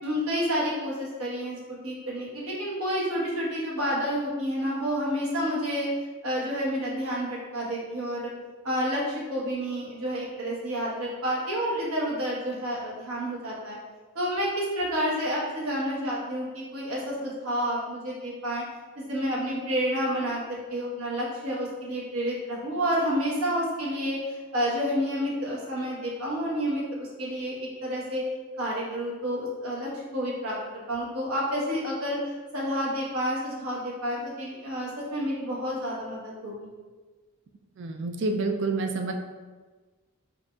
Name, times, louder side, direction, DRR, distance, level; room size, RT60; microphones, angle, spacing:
voice 1, 0.0-5.9 6.2-8.3 8.6-13.8 14.1-18.6 18.9-27.6 27.8-28.2 28.6-30.6 30.9-32.2 32.5-36.7, equal, 75° right, -4 dB, 1.1 m, -29 dB
voice 2, 37.8-39.1, right 3 dB, 55° right, 4 dB, 0.4 m, -28 dB
4.8 x 2.8 x 2.3 m, 1.3 s
head